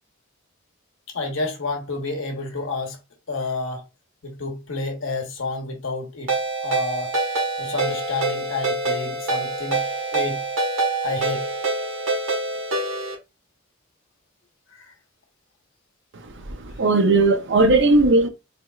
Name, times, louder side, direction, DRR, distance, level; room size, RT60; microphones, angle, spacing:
voice 1, 1.1-3.0 3.3-3.8 4.2-6.3 6.6-7.1 7.6-9.8 10.1-10.4 11.0-11.5 14.7-14.9, left 3 dB, 75° left, 0.9 m, -29 dB
Ringtone, 6.3-13.2, right 2 dB, 90° right, 1.3 m, -25 dB
voice 2, 16.5-18.3, right 2 dB, 60° right, 0.5 m, -17 dB
3.4 x 3.0 x 2.3 m
head